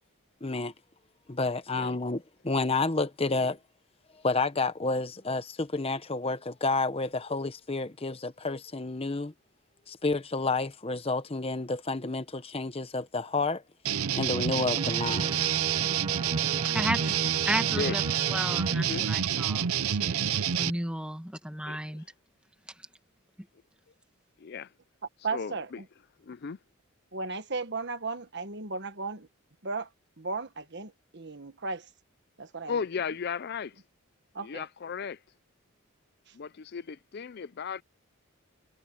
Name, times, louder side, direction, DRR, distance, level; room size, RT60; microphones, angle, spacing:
voice 1, 0.4-0.7 1.3-3.6 4.2-9.3 9.9-13.6 14.1-15.3, left 3 dB, 25° left, 0.9 m, -30 dB
sound 1, 13.9-20.7, right 9 dB, 85° right, 0.6 m, -28 dB
sound 2, 14.8-18.7, right 3 dB, 20° right, 0.3 m, -36 dB
voice 2, 16.6-17.1 17.4-18.0 18.3-22.0 22.8-22.9, right 1 dB, 5° right, 1.5 m, -34 dB
voice 3, 24.4-24.7 25.3-25.8 26.2-26.6 32.7-33.8 34.4-35.2 36.3-37.8, left 6 dB, 50° left, 0.4 m, -35 dB
voice 4, 25.2-25.8 27.1-29.3 29.6-29.9 30.2-31.9 32.4-32.8 34.3-34.7 36.3-36.4, right 4 dB, 55° right, 1.5 m, -35 dB
head